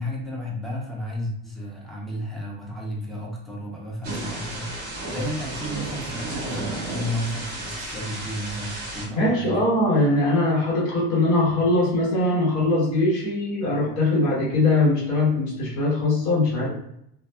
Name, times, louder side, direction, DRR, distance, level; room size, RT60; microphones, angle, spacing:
voice 1, 0.0-9.6, equal, ahead, -4 dB, 0.4 m, -32 dB
Thunder / Rain, 4.0-9.1, right 2 dB, 30° right, 1.3 m, -33 dB
voice 2, 9.1-16.7, left 2 dB, 60° left, -4 dB, 1.3 m, -21 dB
2.6 x 2.4 x 2.3 m, 0.76 s
supercardioid pair, 140°, 34 cm